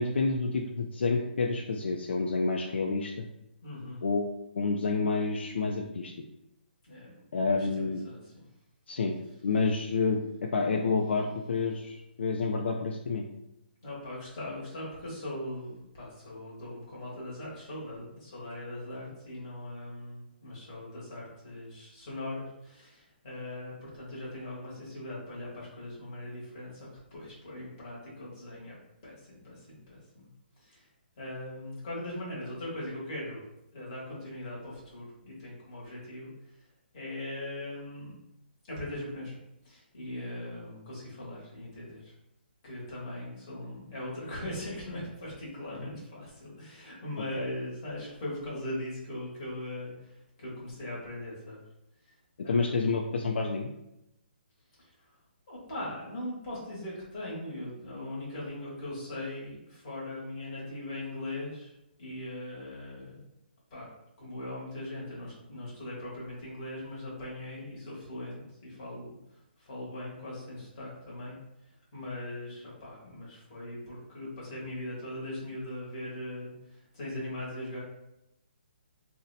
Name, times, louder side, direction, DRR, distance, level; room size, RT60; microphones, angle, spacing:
voice 1, 0.0-3.3 4.0-4.3 4.6-6.1 7.3-8.0 8.9-9.2 9.4-13.3 47.4-47.5 52.5-53.7, left 4 dB, 90° left, 1 dB, 0.3 m, -29 dB
voice 2, 3.6-4.0 6.8-8.4 13.8-28.8 29.0-30.3 30.6-30.9 31.2-33.4 33.7-36.6 36.9-38.1 38.7-39.4 39.6-42.1 42.6-51.6 52.0-52.2 52.4-53.0 54.8-55.1 55.5-63.2 63.7-63.9 64.2-71.4 71.9-77.8, left 1 dB, 25° left, -6 dB, 1.1 m, -40 dB
2.6 x 2.1 x 3.9 m, 0.87 s
hypercardioid pair, 175°, 6 cm